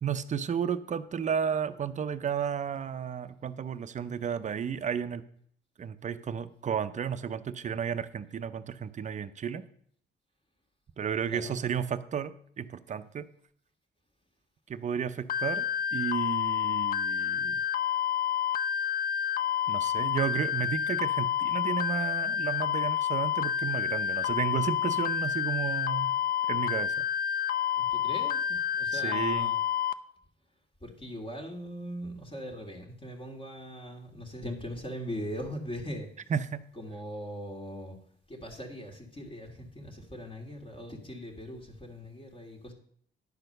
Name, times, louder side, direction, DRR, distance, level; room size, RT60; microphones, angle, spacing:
voice 1, 0.0-5.2 5.8-9.6 11.0-13.3 14.7-15.7 15.9-17.6 19.7-26.2 26.5-27.1 28.9-29.5 36.3-36.6, right 7 dB, 40° right, 11 dB, 0.6 m, -33 dB
sound 1, 15.3-29.9, left 9 dB, 45° left, 0.5 m, -29 dB
voice 2, 27.8-29.6 30.8-36.4 36.7-38.0 38.3-42.7, equal, 25° left, 1 dB, 1.8 m, -40 dB
10.0 x 4.3 x 6.6 m, 0.64 s
cardioid pair, 90°, 20 cm